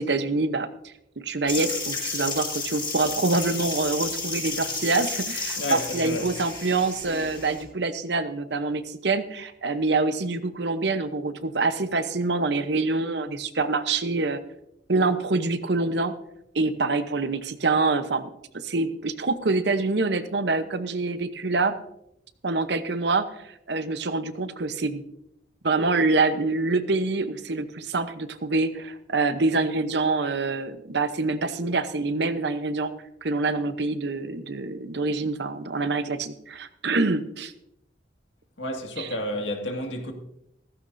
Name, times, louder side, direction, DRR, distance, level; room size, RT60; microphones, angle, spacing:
voice 1, 0.0-14.4 14.9-16.1 16.5-18.3 18.6-21.7 22.4-25.0 25.6-32.9 33.2-37.5 39.0-39.1, right 3 dB, 65° right, 0.9 m, -26 dB
sound 1, 1.5-7.6, left 4 dB, 25° left, 5.6 m, -32 dB
voice 2, 5.6-6.3 38.6-40.1, left 1 dB, 80° left, 2.1 m, -30 dB
15.5 x 14.5 x 2.7 m
head